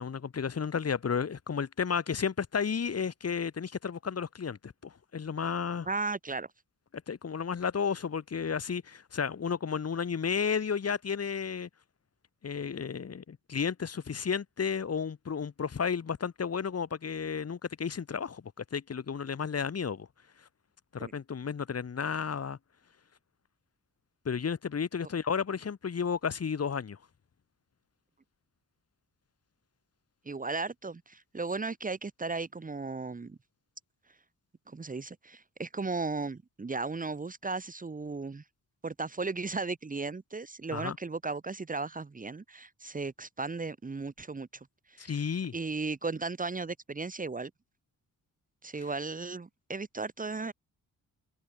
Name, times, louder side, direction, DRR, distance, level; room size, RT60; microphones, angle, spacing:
voice 1, 0.0-5.9 7.1-11.7 12.4-20.1 20.9-22.6 24.3-27.0 40.7-41.0 45.0-45.5, left 6 dB, 45° left, 7.4 m, -32 dB
voice 2, 5.9-6.5 21.0-21.1 30.3-33.4 34.7-38.4 38.8-44.5 44.9-45.2 45.5-47.5 48.6-50.5, right 3 dB, 25° right, 2.3 m, -35 dB
wide cardioid pair, 160°, 35 cm